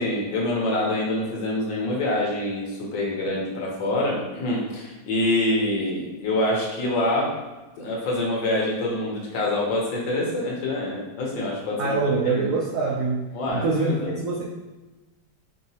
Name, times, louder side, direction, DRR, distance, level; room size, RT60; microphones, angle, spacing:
voice 1, 0.0-7.3 7.8-12.0 12.3-12.5 13.3-14.1, left 1 dB, 75° left, -3 dB, 1.7 m, -26 dB
voice 2, 11.8-13.2 13.5-14.4, right 3 dB, 75° right, -3 dB, 0.7 m, -24 dB
5.1 x 2.9 x 2.8 m, 1.1 s
omnidirectional pair, 2.1 m